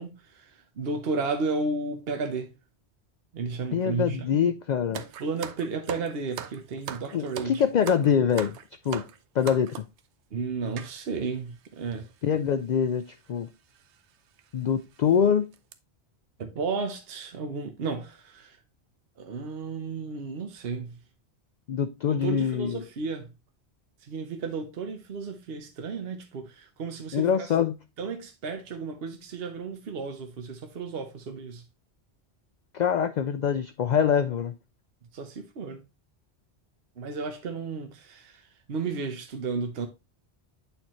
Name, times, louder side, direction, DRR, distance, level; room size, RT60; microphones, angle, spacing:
voice 1, 0.0-2.5 3.3-4.5 5.2-7.6 10.3-12.1 16.4-18.6 19.2-21.0 22.1-23.3 24.1-27.3 28.0-31.6 35.1-35.8 37.0-38.4 38.7-39.9, right 4 dB, 65° right, 1.1 m, -33 dB
voice 2, 3.7-5.0 7.1-8.6 8.9-9.0 9.4-9.8 12.2-13.5 14.5-15.4 21.7-22.8 27.1-27.8 32.7-34.5, left 7 dB, 60° left, 0.5 m, -24 dB
sound 1, 4.9-10.0 10.8-10.9 11.7-11.8 11.9-12.1 13.1-13.3 13.8-13.9 14.4-14.5 14.9-15.2 15.5-15.7, right 9 dB, 90° right, 1.0 m, -39 dB
8.5 x 4.4 x 3.0 m
omnidirectional pair, 1.1 m